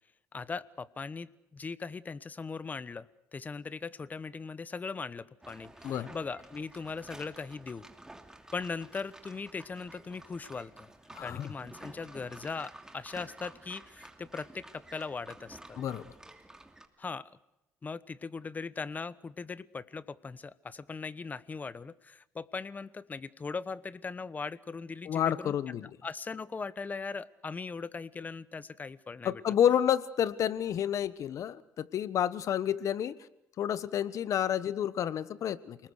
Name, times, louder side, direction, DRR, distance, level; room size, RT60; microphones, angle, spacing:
voice 1, 0.3-7.9 8.5-10.9 11.2-15.8 17.0-17.3 17.8-29.4, left 4 dB, 25° left, 17 dB, 1.0 m, -39 dB
sound 1, 5.4-16.9, right 2 dB, 10° right, 2.8 m, -51 dB
voice 2, 11.1-11.5 15.8-16.0 25.1-25.9 29.2-33.1 33.6-35.8, left 9 dB, 55° left, 15 dB, 1.2 m, -29 dB
29.0 x 20.0 x 6.6 m, 0.86 s
cardioid pair, 100°, 6 cm